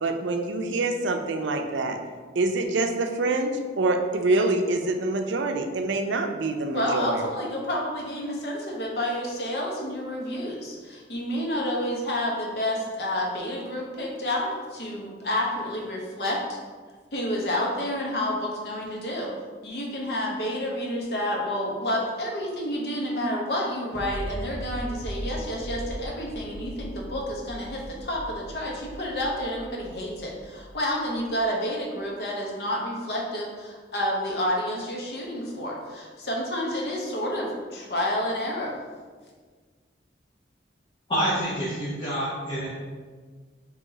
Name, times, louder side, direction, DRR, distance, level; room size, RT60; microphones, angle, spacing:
voice 1, 0.0-2.0 2.4-7.2, right 2 dB, 80° right, 5 dB, 0.4 m, -26 dB
voice 2, 6.7-16.6 17.1-19.3 19.6-38.8, left 1 dB, 55° left, -1 dB, 0.8 m, -29 dB
sound 1, 23.9-31.4, equal, 60° right, 0.8 m, -38 dB
voice 3, 41.1-42.7, equal, 25° left, -10 dB, 0.9 m, -27 dB
3.9 x 2.9 x 3.9 m, 1.5 s
head